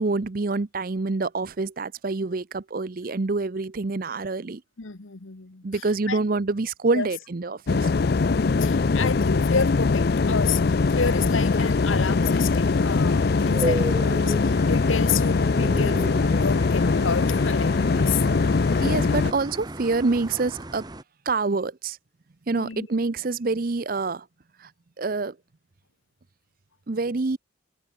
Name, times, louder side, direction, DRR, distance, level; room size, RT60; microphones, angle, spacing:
voice 1, 0.0-4.6 5.6-7.9 18.8-20.8 21.3-22.0 22.5-24.2 24.6-24.7 25.0-25.4 26.9-27.4, right 3 dB, 45° right, 0.6 m, -26 dB
voice 2, 4.8-5.8 6.1-6.2 6.9-7.1 8.3-10.6 10.9-18.2 18.6-19.0 22.5-22.9, left 5 dB, 85° left, 1.3 m, -30 dB
sound 1, 7.7-19.3, left 4 dB, 55° left, 0.5 m, -22 dB
sound 2, 10.8-21.0, right 1 dB, 20° right, 1.6 m, -36 dB
head